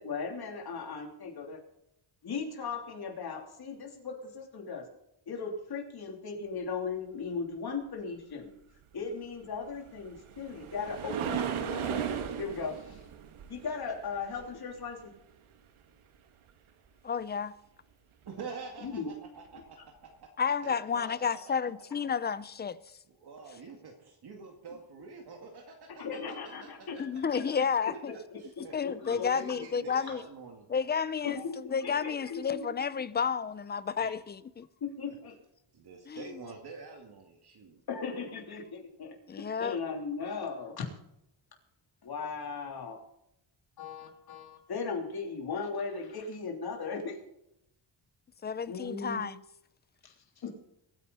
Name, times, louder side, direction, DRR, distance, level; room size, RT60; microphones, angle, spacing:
voice 1, 0.0-1.6 2.2-4.9 5.3-8.5 8.9-12.0 12.4-13.0 13.5-15.1 18.8-19.1 26.0-27.1 27.3-27.4 28.0-29.4 31.2-32.7 34.0-34.1 34.8-35.3 37.9-40.9 42.0-43.0 43.8-47.2 48.7-49.2 50.0-50.5, left 5 dB, 50° left, 3.4 m, -37 dB
sound 1, 9.7-15.0 18.8-19.0 19.6-19.7, right 8 dB, 80° right, 1.7 m, -36 dB
voice 2, 17.0-17.5 20.4-22.8 27.0-28.1 28.7-30.2 30.7-34.7 36.1-36.3 39.3-39.8 48.4-49.4, left 6 dB, 20° left, 0.4 m, -31 dB
voice 3, 18.3-20.3 20.6-21.4 23.1-26.2 26.6-27.0 28.4-30.7 31.2-31.3 35.1-35.2 35.7-37.8, right 4 dB, 50° right, 2.3 m, -47 dB
23.0 x 9.7 x 4.2 m
wide cardioid pair, 165°, 48 cm